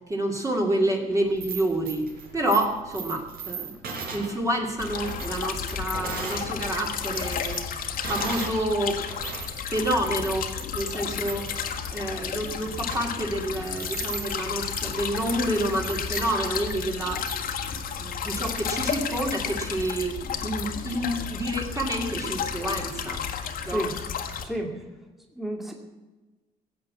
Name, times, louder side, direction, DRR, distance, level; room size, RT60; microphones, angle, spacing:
voice 1, 0.1-2.1 2.3-7.6 8.0-9.0 9.5-11.5 11.9-17.3 18.0-20.2 20.4-23.2 23.7-23.9, right 1 dB, 20° right, 0 dB, 2.3 m, -28 dB
sound 1, 1.3-6.5 6.8-8.6 9.0-19.2, right 5 dB, 65° right, 4.1 m, -39 dB
sound 2, 4.8-24.5, left 7 dB, 60° left, 1.7 m, -32 dB
voice 2, 24.4-24.7 25.4-25.7, equal, ahead, 1 dB, 2.4 m, -30 dB
16.0 x 7.9 x 8.4 m, 1.2 s
cardioid pair, 110°, 17 cm